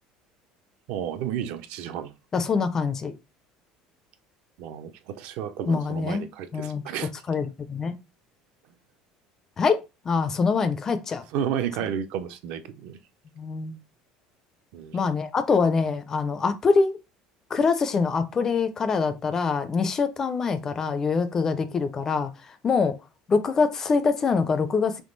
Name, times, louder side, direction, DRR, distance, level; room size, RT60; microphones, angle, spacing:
voice 1, 0.9-2.1 4.6-7.1 11.3-13.0 14.7-15.0, right 9 dB, 60° right, 0.5 m, -32 dB
voice 2, 2.3-3.1 5.7-6.3 6.5-6.8 7.3-8.0 9.6-9.8 10.1-11.2 13.4-13.8 14.9-17.0 17.5-22.3 22.6-22.9 23.3-25.0, left 5 dB, 20° left, 0.4 m, -24 dB
3.5 x 3.0 x 3.9 m
cardioid pair, 175°, 2 cm